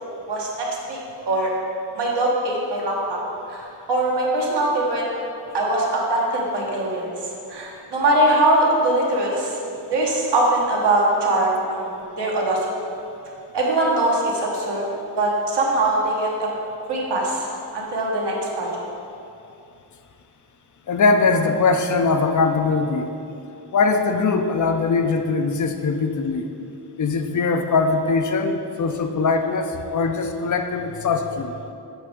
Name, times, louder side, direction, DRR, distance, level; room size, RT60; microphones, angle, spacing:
voice 1, 0.3-1.5 1.9-3.2 3.5-5.0 5.5-9.6 9.9-12.7 13.5-14.8 15.2-16.5 16.9-17.5 17.7-18.7, right 1 dB, 80° right, -3 dB, 1.3 m, -22 dB
voice 2, 20.9-23.1 23.7-26.5 27.0-31.5, left 4 dB, 50° left, 6 dB, 0.5 m, -21 dB
7.1 x 4.9 x 3.6 m, 2.7 s
wide cardioid pair, 115°, 40 cm